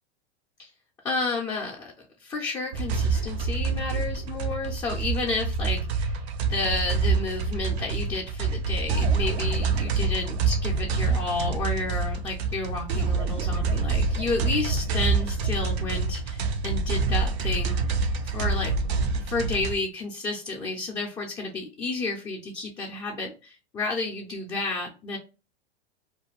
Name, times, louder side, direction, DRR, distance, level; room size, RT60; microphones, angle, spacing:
voice 1, 1.0-1.9 2.2-6.1 6.5-18.0 18.3-18.7 19.1-25.2, left 3 dB, 15° left, -2 dB, 0.3 m, -31 dB
sound 1, 2.7-19.8, right 4 dB, 80° right, 0.6 m, -26 dB
2.4 x 2.2 x 3.0 m, 0.32 s
hypercardioid pair, 120°, 31 cm